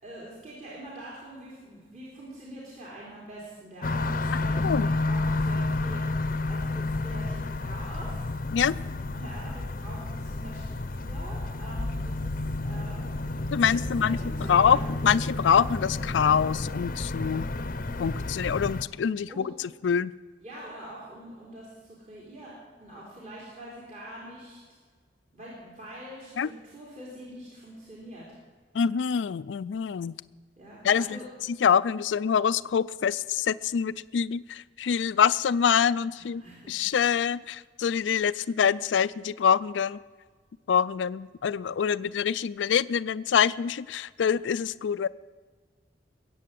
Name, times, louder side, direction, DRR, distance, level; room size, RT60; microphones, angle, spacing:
voice 1, 0.0-8.3 9.1-13.0 13.6-14.9 19.3-19.5 20.4-24.6 25.3-28.3 30.6-31.2 36.2-36.7, right 1 dB, 40° right, -6 dB, 3.9 m, -44 dB
sound 1, 3.8-18.8, left 2 dB, 50° left, 0.7 m, -31 dB
voice 2, 13.5-14.2 14.5-14.8 15.0-17.5 18.0-19.5 19.8-20.1 26.4-26.5 28.7-30.1 30.8-31.2 31.6-36.4 36.7-40.0 40.7-45.1, left 7 dB, 90° left, 18 dB, 0.4 m, -25 dB
21.0 x 8.5 x 7.6 m, 1.5 s
head